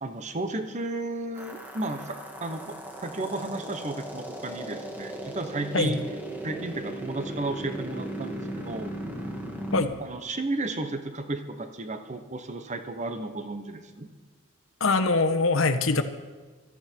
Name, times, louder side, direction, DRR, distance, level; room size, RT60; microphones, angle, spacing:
voice 1, 0.0-2.7 3.0-6.0 6.4-8.9 10.0-14.1, right 2 dB, 35° right, 8 dB, 1.0 m, -33 dB
sound 1, 1.4-9.8, right 1 dB, 10° right, 1.6 m, -37 dB
voice 2, 14.8-16.0, left 3 dB, 75° left, 9 dB, 1.1 m, -23 dB
16.5 x 13.5 x 4.6 m, 1.4 s
head